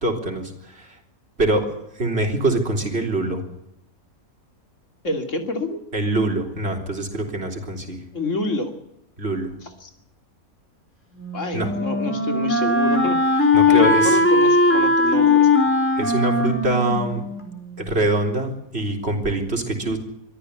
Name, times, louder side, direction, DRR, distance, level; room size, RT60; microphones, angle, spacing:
voice 1, 0.0-0.5 1.4-1.7 2.0-3.4 5.9-8.0 9.2-9.5 11.5-11.7 13.5-14.2 16.0-17.2 17.8-20.0, right 2 dB, 45° right, 2 dB, 4.0 m, -23 dB
voice 2, 5.0-5.8 8.1-8.7 9.6-9.9 11.3-15.5, left 2 dB, 55° left, 5 dB, 3.2 m, -28 dB
Wind instrument woodwind instrument, 11.1-18.0, left 2 dB, 10° left, 3.9 m, -19 dB
23.5 x 14.0 x 8.2 m, 0.80 s
omnidirectional pair, 1.5 m